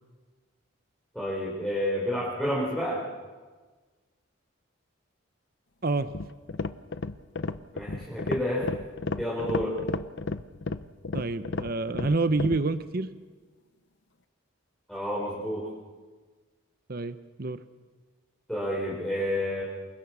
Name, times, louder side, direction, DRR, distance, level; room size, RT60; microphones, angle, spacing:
voice 1, 1.1-3.0 7.7-8.7 9.2-9.8 14.9-15.7 18.5-19.6, equal, ahead, -6 dB, 4.6 m, -29 dB
sound 1, 6.0-12.6, left 3 dB, 60° left, 0.8 m, -33 dB
voice 2, 11.1-13.1 16.9-17.6, right 3 dB, 45° right, 11 dB, 0.8 m, -28 dB
28.0 x 23.0 x 6.2 m, 1.4 s
head